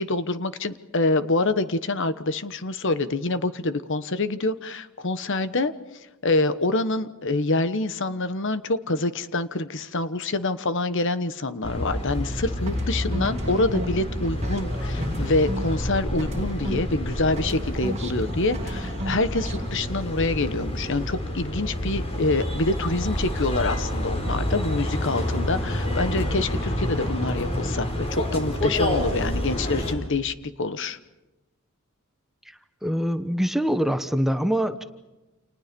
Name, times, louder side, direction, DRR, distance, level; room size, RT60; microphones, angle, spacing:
voice 1, 0.0-5.7 6.2-31.0, left 2 dB, 55° left, 12 dB, 1.2 m, -26 dB
sound 1, 11.6-29.9, left 1 dB, 25° left, 5.1 m, -28 dB
sound 2, 12.7-17.1 17.4-19.7, equal, 30° right, 2.6 m, -35 dB
voice 2, 32.8-34.8, equal, ahead, 9 dB, 1.1 m, -24 dB
29.5 x 28.5 x 5.3 m, 1.0 s
head